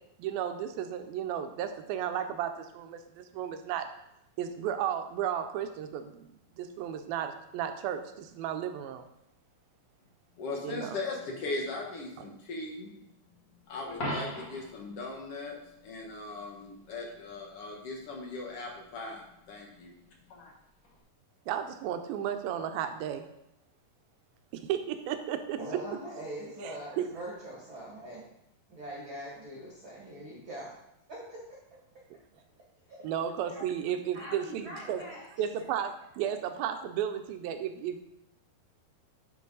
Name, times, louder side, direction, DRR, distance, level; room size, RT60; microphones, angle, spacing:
voice 1, 0.2-3.9 4.4-9.0 10.6-11.0 21.5-23.2 24.5-25.6 26.6-27.1 33.0-35.0 35.4-38.0, right 9 dB, 80° right, 7 dB, 2.4 m, -34 dB
voice 2, 10.4-12.9 13.7-19.9 20.3-20.5, left 3 dB, 65° left, -1 dB, 1.4 m, -39 dB
Coin (dropping), 13.9-14.8 20.8-21.0, equal, 35° left, 2.2 m, -36 dB
voice 3, 25.6-28.2 28.7-30.7 31.1-31.6 32.9-33.0 33.5-33.6 34.1-35.2, right 1 dB, 45° right, -4 dB, 1.7 m, -42 dB
11.0 x 5.6 x 3.9 m, 0.83 s
omnidirectional pair, 4.5 m